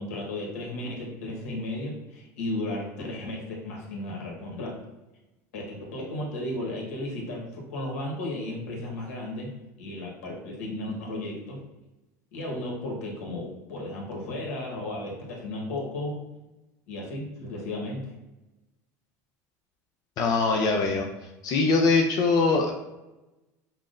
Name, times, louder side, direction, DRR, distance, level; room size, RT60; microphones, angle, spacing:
voice 1, 0.0-4.8 5.5-9.5 9.8-11.6 12.3-16.3 16.9-18.1, left 1 dB, 85° left, -2 dB, 1.1 m, -34 dB
voice 2, 20.2-21.1 21.4-22.7, left 3 dB, 50° left, 1 dB, 0.5 m, -22 dB
5.6 x 2.0 x 2.5 m, 1.0 s
supercardioid pair, 115°, 8 cm